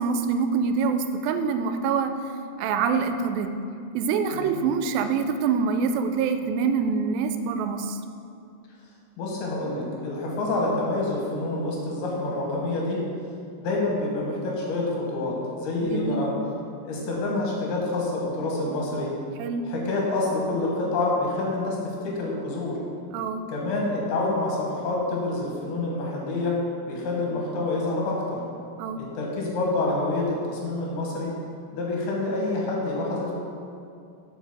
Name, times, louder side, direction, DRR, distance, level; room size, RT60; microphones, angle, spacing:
voice 1, 0.0-2.1 2.6-3.5 3.9-8.0 15.8-16.3 19.4-19.6 23.1-23.5 28.8-29.0, right 5 dB, 80° right, 8 dB, 2.2 m, -25 dB
voice 2, 9.2-13.0 13.6-16.3 16.8-19.1 19.7-22.8 23.5-26.6 26.9-28.4 29.0-31.3 31.7-33.3, left 2 dB, 80° left, -3 dB, 3.4 m, -27 dB
8.1 x 4.9 x 6.0 m, 2.4 s
omnidirectional pair, 4.5 m